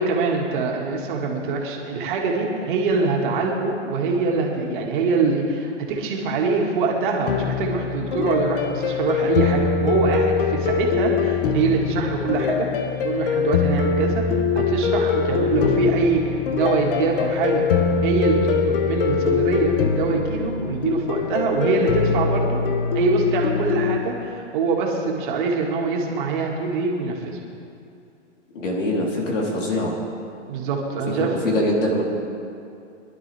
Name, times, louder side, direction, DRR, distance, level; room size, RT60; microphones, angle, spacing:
voice 1, 0.0-12.7 13.0-17.6 18.0-22.7 22.9-27.4 30.5-31.4, right 4 dB, 40° right, -1 dB, 2.2 m, -24 dB
sound 1, 7.3-24.0, left 5 dB, 45° left, 1.1 m, -23 dB
voice 2, 28.5-30.0 31.2-32.0, left 1 dB, 75° left, -3 dB, 4.0 m, -23 dB
22.5 x 11.5 x 3.5 m, 2.5 s
hypercardioid pair, 145°, 37 cm